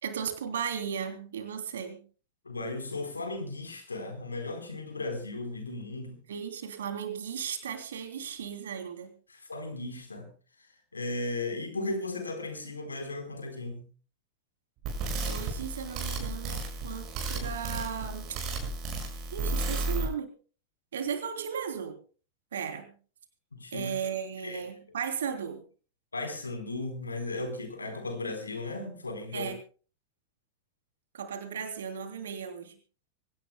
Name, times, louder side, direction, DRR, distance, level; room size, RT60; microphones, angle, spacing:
voice 1, 0.0-2.0 6.3-9.1 15.3-18.4 19.3-20.3 20.9-22.0 22.5-22.9 23.7-25.6 29.3-29.6 31.1-32.7, right 7 dB, 65° right, 3.0 m, -36 dB
voice 2, 2.4-6.2 9.3-10.3 10.9-13.9 23.5-23.9 24.4-24.6 26.1-29.5, left 2 dB, 80° left, 4.1 m, -36 dB
sound 1, 14.8-20.0, right 2 dB, 40° right, 6.2 m, -33 dB
25.0 x 17.0 x 2.2 m
figure-of-eight pair, 90°, 0 cm